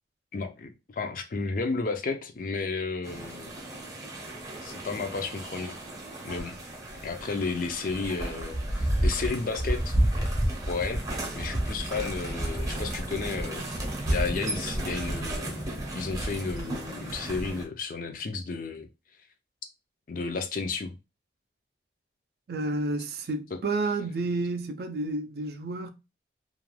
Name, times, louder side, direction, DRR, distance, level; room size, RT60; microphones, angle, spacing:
voice 1, 0.3-3.5 4.6-5.8 6.2-6.6 6.9-9.9 10.7-11.0 11.3-15.7 15.9-18.9 20.1-21.0, left 4 dB, 50° left, 0.4 m, -33 dB
sound 1, 3.0-17.6, right 1 dB, 20° right, 0.6 m, -31 dB
voice 2, 22.5-25.9, right 2 dB, 60° right, 0.4 m, -30 dB
2.4 x 2.2 x 3.1 m
head